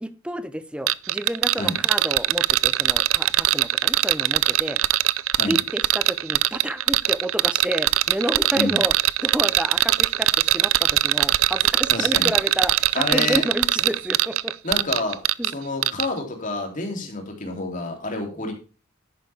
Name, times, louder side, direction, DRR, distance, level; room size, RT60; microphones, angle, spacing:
voice 1, 0.0-4.8 5.4-9.0 9.2-14.5 15.4-15.5 17.0-17.1, right 1 dB, 5° right, 13 dB, 0.7 m, -30 dB
sound 1, 0.9-15.5 15.8-16.1, right 15 dB, 80° right, 0.4 m, -21 dB
voice 2, 11.9-12.3 12.9-13.4 14.6-15.2 15.5-18.5, left 2 dB, 40° left, 3 dB, 3.0 m, -28 dB
11.0 x 9.0 x 3.5 m, 0.33 s
head